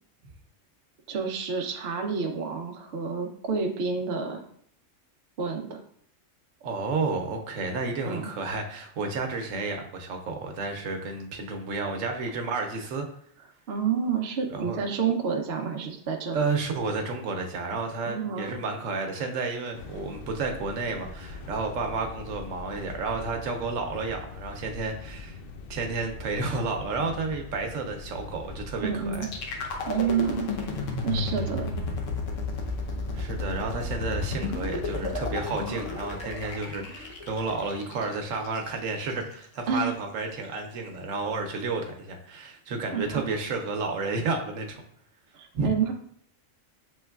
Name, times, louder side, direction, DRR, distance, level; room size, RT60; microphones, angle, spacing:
voice 1, 1.1-4.4 5.4-5.8 8.0-8.3 13.7-16.4 18.0-18.5 28.8-29.3 29.9-30.4 31.0-31.7 36.4-36.6 39.7-39.9 42.9-43.3 45.3-45.9, right 6 dB, 60° right, 3 dB, 0.8 m, -29 dB
voice 2, 6.6-13.0 14.5-14.8 16.3-25.4 25.7-29.3 33.1-44.8 45.5-45.7, right 3 dB, 85° right, 3 dB, 1.1 m, -31 dB
sound 1, 19.7-33.3, left 3 dB, 60° left, 0.6 m, -42 dB
sound 2, 29.1-39.1, left 3 dB, 80° left, 1.1 m, -32 dB
7.1 x 3.1 x 2.3 m, 0.64 s
omnidirectional pair, 1.3 m